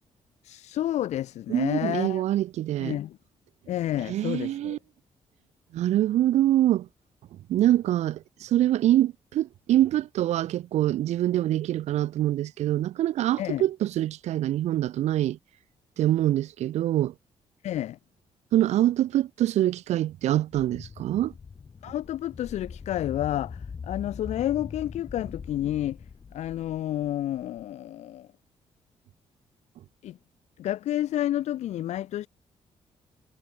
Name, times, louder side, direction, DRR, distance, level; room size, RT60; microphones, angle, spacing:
voice 1, 0.4-2.2 2.8-3.2 3.7-4.8 13.4-13.6 17.6-18.0 21.8-26.0 26.3-28.3 30.0-30.2 30.6-32.3, left 12 dB, 90° left, 3.1 m, -30 dB
voice 2, 1.5-3.0 4.1-4.8 5.7-6.9 7.5-15.4 16.0-17.1 18.5-21.3, right 13 dB, 90° right, 1.0 m, -24 dB
sound 1, 20.5-27.6, left 5 dB, 35° left, 4.7 m, -42 dB
cardioid pair, 135°, 11 cm